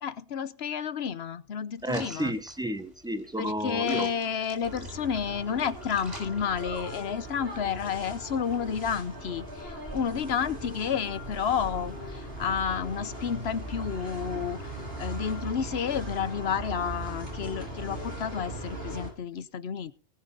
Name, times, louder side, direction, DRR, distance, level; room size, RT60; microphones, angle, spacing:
voice 1, 0.0-2.3 3.4-19.9, left 7 dB, 85° left, 15 dB, 1.1 m, -31 dB
voice 2, 1.8-4.1, right 1 dB, 5° right, 10 dB, 1.0 m, -31 dB
sound 1, 1.8-7.2, equal, 40° right, 5.1 m, -48 dB
sound 2, 4.6-19.1, right 1 dB, 75° right, 5.5 m, -39 dB
19.0 x 6.7 x 5.3 m, 0.37 s
omnidirectional pair, 1.0 m